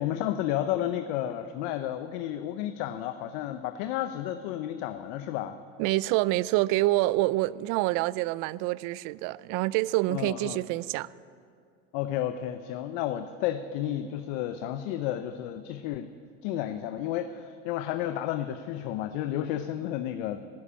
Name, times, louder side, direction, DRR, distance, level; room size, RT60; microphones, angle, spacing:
voice 1, 0.0-5.6 10.1-10.6 11.9-16.1 16.4-20.4, left 11 dB, 65° left, 0.8 m, -32 dB
voice 2, 5.8-11.1, right 18 dB, 55° right, 0.5 m, -27 dB
12.5 x 12.0 x 8.8 m
supercardioid pair, 100°, 39 cm